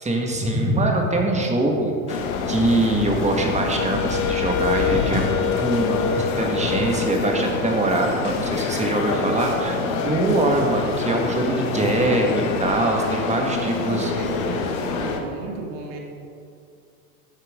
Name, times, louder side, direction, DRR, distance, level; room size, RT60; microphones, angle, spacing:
voice 1, 0.0-14.1, right 2 dB, 15° right, 1 dB, 1.7 m, -23 dB
sound 1, 2.1-15.2, left 4 dB, 70° left, 1.4 m, -26 dB
Wind instrument woodwind instrument, 3.8-8.7, left 7 dB, 40° left, 1.0 m, -28 dB
voice 2, 13.4-16.0, right 2 dB, 55° right, 0 dB, 2.3 m, -33 dB
13.0 x 7.9 x 3.7 m, 2.5 s
hypercardioid pair, 100°, 44 cm